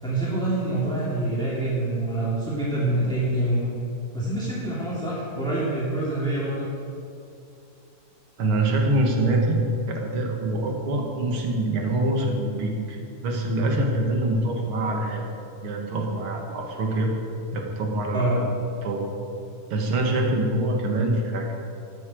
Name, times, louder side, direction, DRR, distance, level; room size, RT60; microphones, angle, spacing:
voice 1, 0.0-3.7 4.1-6.7 18.1-18.4, right 1 dB, ahead, -7 dB, 2.3 m, -26 dB
voice 2, 8.4-9.6 9.9-15.3 15.6-17.1 17.5-18.4 18.8-19.1 19.7-21.5, right 2 dB, 45° right, 1 dB, 2.2 m, -25 dB
13.0 x 8.5 x 7.7 m, 2.6 s
omnidirectional pair, 3.9 m